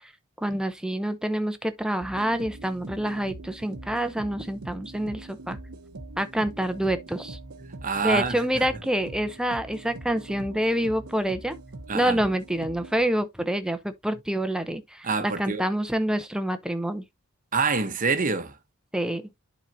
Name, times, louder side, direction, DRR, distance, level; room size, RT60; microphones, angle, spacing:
voice 1, 0.4-5.6 6.2-7.4 8.0-11.6 11.9-17.0 18.9-19.2, right 1 dB, 5° right, 0.7 m, -27 dB
sound 1, 2.0-13.1, right 2 dB, 80° right, 0.9 m, -42 dB
voice 2, 7.6-8.7 11.9-12.3 15.0-15.6 17.5-18.6, right 4 dB, 40° right, 1.0 m, -27 dB
10.5 x 4.0 x 2.6 m
head